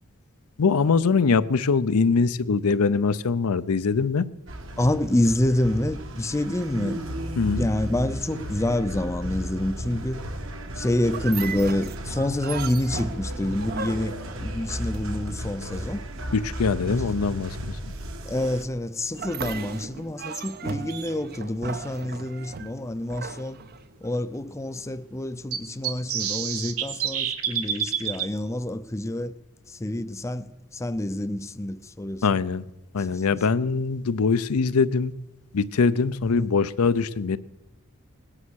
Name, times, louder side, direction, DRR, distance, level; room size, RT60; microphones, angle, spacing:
voice 1, 0.6-4.3 7.4-7.7 16.3-17.9 32.2-32.6 32.9-35.1 35.5-37.4, left 5 dB, 85° left, 0.6 m, -23 dB
sound 1, 4.5-18.6, equal, 60° right, 1.4 m, -34 dB
voice 2, 4.8-7.0 7.5-10.2 10.7-16.0 16.8-17.1 18.2-23.6 24.0-29.4 29.7-32.3 33.0-33.4 36.3-36.5, left 1 dB, 15° left, 0.4 m, -27 dB
sound 2, 11.0-15.3 19.1-24.2, right 5 dB, 45° right, 0.6 m, -37 dB
sound 3, 19.9-20.0 22.0-22.1 22.7-22.8 23.0-23.1 25.5-28.3, right 9 dB, 80° right, 1.3 m, -28 dB
19.0 x 9.8 x 6.3 m
head